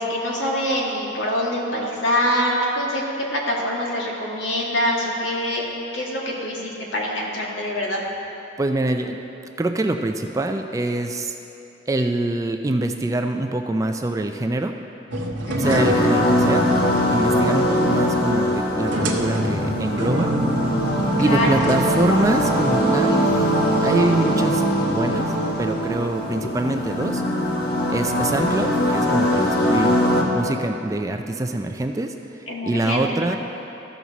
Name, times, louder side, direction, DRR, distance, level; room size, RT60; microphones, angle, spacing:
voice 1, 0.0-5.6 5.9-8.0 15.5-15.8 21.2-21.6 26.2-26.5 32.5-33.4, left 1 dB, 75° left, -3 dB, 1.6 m, -25 dB
voice 2, 8.6-9.2 9.6-11.3 11.9-14.7 15.6-16.7 17.1-20.3 21.2-23.3 23.8-24.6 24.9-27.2 27.9-33.4, right 2 dB, 15° right, 5 dB, 0.3 m, -24 dB
sound 1, 15.1-22.7, right 1 dB, 80° right, 0.9 m, -28 dB
sound 2, 15.6-30.2, equal, 55° left, 1.2 m, -21 dB
14.0 x 6.0 x 4.1 m, 2.9 s
head